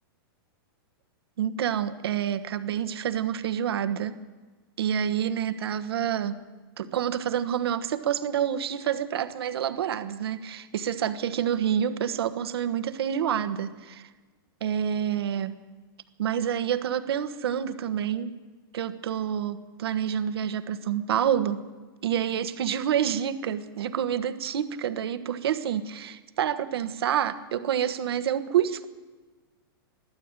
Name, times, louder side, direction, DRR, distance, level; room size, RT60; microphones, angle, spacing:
voice 1, 1.4-4.1 4.8-6.3 6.8-14.1 14.6-15.5 16.2-18.3 18.7-21.6 22.0-28.9, right 9 dB, 85° right, 10 dB, 1.4 m, -28 dB
22.5 x 14.0 x 9.0 m, 1.3 s
supercardioid pair, 160°, 13 cm